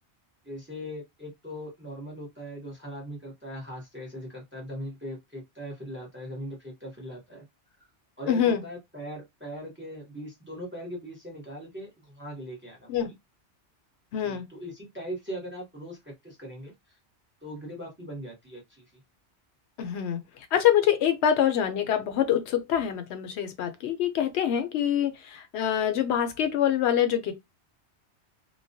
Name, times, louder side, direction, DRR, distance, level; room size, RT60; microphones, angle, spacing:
voice 1, 0.4-7.4 8.2-13.1 14.2-16.7 17.4-18.8, equal, 10° right, 0.7 m, -40 dB
voice 2, 8.3-8.6 12.9-13.1 14.1-14.4 19.8-20.2 20.5-27.3, left 9 dB, 75° left, 0.8 m, -25 dB
2.3 x 2.1 x 2.5 m
omnidirectional pair, 1.2 m